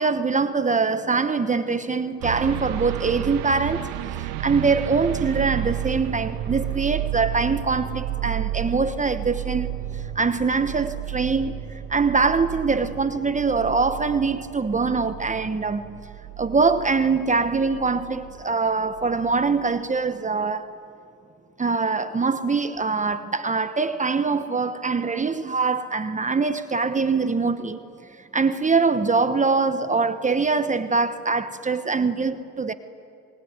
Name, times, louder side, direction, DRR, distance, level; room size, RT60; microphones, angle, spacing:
voice 1, 0.0-3.9 4.4-9.7 10.2-11.5 11.9-16.0 16.4-20.6 21.6-27.8 28.3-32.7, right 4 dB, 20° right, 1.1 m, -23 dB
sound 1, 2.2-18.4 18.8-19.7, right 12 dB, 85° right, 1.4 m, -32 dB
27.5 x 20.5 x 9.5 m
supercardioid pair, 90°, 35 cm